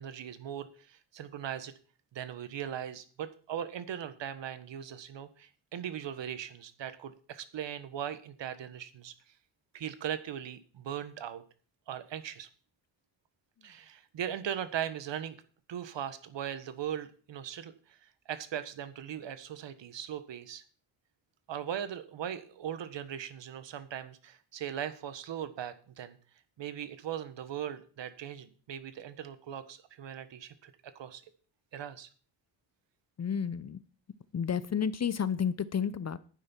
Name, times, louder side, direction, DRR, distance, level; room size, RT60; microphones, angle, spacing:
voice 1, 0.0-1.7 2.1-9.1 9.7-11.4 11.9-12.5 13.6-15.4 15.7-17.7 18.3-20.6 21.5-26.2 26.6-31.2 31.7-32.1, right 9 dB, 60° right, 12 dB, 1.5 m, -39 dB
voice 2, 33.2-33.8 34.3-36.2, left 7 dB, 35° left, 17 dB, 0.7 m, -31 dB
11.0 x 9.6 x 4.6 m, 0.41 s
supercardioid pair, 70°, 48 cm